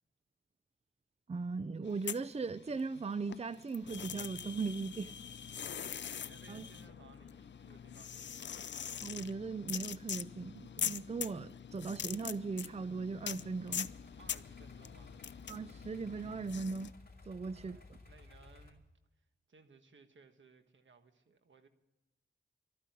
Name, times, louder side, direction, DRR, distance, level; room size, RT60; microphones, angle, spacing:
voice 1, 1.3-5.1 6.5-6.7 9.0-13.9 15.5-16.9 17.3-17.8, right 4 dB, 35° right, 0.5 m, -38 dB
sound 1, 1.9-3.0 3.3-16.9, left 8 dB, 70° left, 0.4 m, -43 dB
voice 2, 5.7-8.5 14.2-15.2 17.3-18.8 19.1-21.7, right 4 dB, 80° right, 1.5 m, -62 dB
sound 2, 13.7-18.7, left 3 dB, 50° left, 2.8 m, -56 dB
13.0 x 9.2 x 9.4 m
wide cardioid pair, 70°, 19 cm